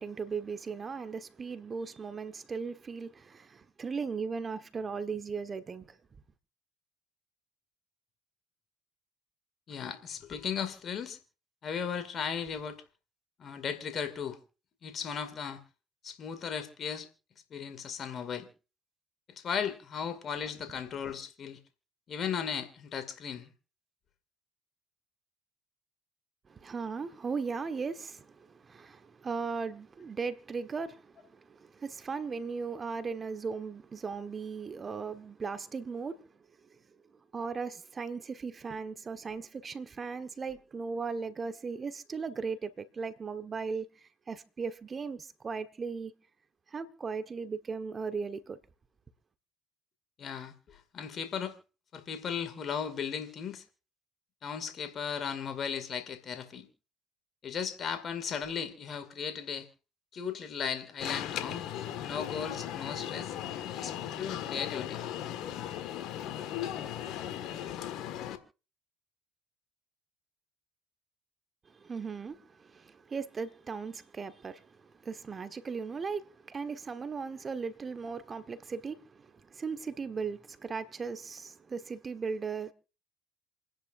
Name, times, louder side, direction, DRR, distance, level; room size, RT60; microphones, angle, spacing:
voice 1, 0.0-6.0 26.5-36.3 36.7-36.8 37.3-46.1 46.7-48.6 71.7-82.7, right 5 dB, 35° right, 1.3 m, -37 dB
voice 2, 9.7-11.2 11.6-12.8 13.4-14.4 14.8-15.6 16.0-17.1 17.5-18.5 19.3-21.6 22.1-23.5 50.2-51.6 51.9-53.6 54.4-56.7 57.4-59.7 60.1-61.7 62.0-63.3 63.7-65.0, left 7 dB, 45° left, 2.2 m, -36 dB
Alarm, 61.0-68.4, left 11 dB, 65° left, 1.7 m, -37 dB
28.0 x 10.5 x 2.6 m
supercardioid pair, 75°, 0 cm